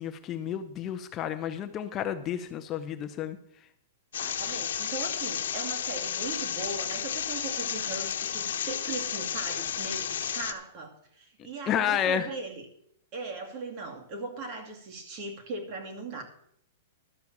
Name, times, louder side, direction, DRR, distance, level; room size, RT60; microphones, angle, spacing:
voice 1, 0.0-3.4 11.7-12.3, left 9 dB, 25° left, 8 dB, 0.7 m, -30 dB
sound 1, 4.1-10.5, left 9 dB, 80° left, 1.1 m, -32 dB
voice 2, 4.2-12.6 13.1-16.2, right 3 dB, 35° right, 3 dB, 2.4 m, -39 dB
12.0 x 5.8 x 7.1 m, 0.70 s
hypercardioid pair, 150°, 0 cm